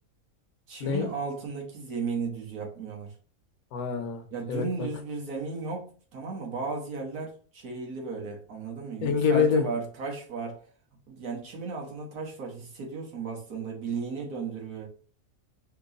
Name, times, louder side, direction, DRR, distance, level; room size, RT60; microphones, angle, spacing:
voice 1, 0.7-3.1 4.3-10.6 11.1-14.9, right 4 dB, 85° right, 0 dB, 1.8 m, -35 dB
voice 2, 3.7-4.2 4.5-4.9 9.0-9.6, left 6 dB, 75° left, 5 dB, 1.2 m, -25 dB
4.5 x 3.0 x 4.0 m, 0.42 s
omnidirectional pair, 1.5 m